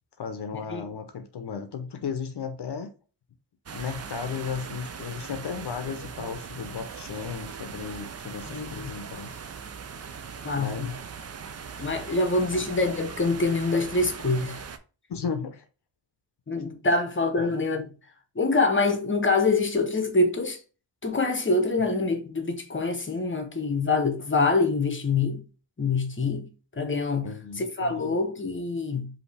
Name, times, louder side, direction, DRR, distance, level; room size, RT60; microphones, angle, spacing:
voice 1, 0.2-2.9 3.7-9.3 10.5-11.0 12.5-12.7 15.1-15.6 17.4-17.5 27.2-28.2, left 6 dB, 55° left, 0.7 m, -35 dB
sound 1, 3.7-14.8, right 6 dB, 35° right, 0.4 m, -40 dB
voice 2, 8.5-8.9 10.4-10.9 11.8-14.6 16.5-17.9 18.3-20.6 21.0-25.4 25.8-26.5 26.8-27.3 27.6-29.1, left 3 dB, 25° left, 0.8 m, -25 dB
5.3 x 2.8 x 3.3 m
wide cardioid pair, 150°, 47 cm